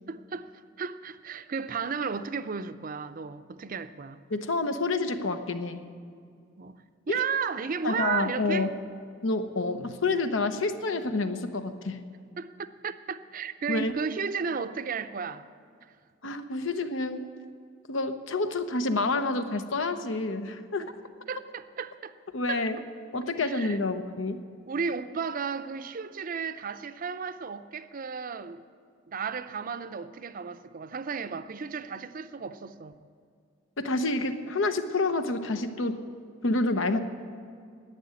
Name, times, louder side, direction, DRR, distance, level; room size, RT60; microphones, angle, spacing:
voice 1, 0.1-0.5 0.8-4.2 6.6-6.7 7.1-8.7 12.4-15.4 16.2-16.3 20.8-20.9 21.3-22.1 22.5-22.7 23.4-23.8 24.7-28.6 29.1-32.9, right 6 dB, 45° right, 0.5 m, -34 dB
voice 2, 4.3-5.8 7.1-7.2 7.8-8.7 9.2-12.0 13.7-13.9 16.2-17.3 17.9-20.8 22.3-22.8 23.1-24.4 33.8-36.0 36.4-37.0, left 3 dB, 85° left, 0.9 m, -28 dB
11.0 x 9.2 x 9.6 m
head